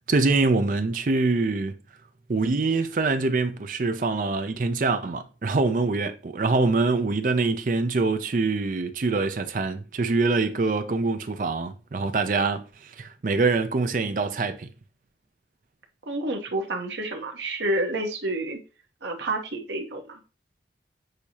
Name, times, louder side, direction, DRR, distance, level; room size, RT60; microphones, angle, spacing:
voice 1, 0.1-1.7 2.3-12.6 13.0-14.7, right 3 dB, 45° right, 0.4 m, -24 dB
voice 2, 16.0-18.6 19.0-20.2, right 2 dB, 85° right, 0.9 m, -29 dB
6.4 x 2.7 x 2.8 m
head